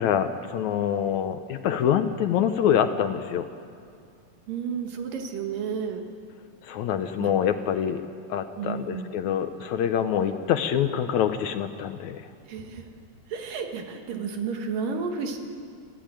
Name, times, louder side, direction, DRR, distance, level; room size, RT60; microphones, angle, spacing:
voice 1, 0.0-3.5 6.6-8.0 8.3-12.3, left 9 dB, 70° left, 9 dB, 1.9 m, -25 dB
voice 2, 4.5-6.0 7.2-7.3 8.6-9.1 12.4-12.8 13.3-15.4, right 6 dB, 80° right, 4 dB, 3.4 m, -32 dB
25.5 x 15.5 x 9.0 m, 2.3 s
omnidirectional pair, 3.9 m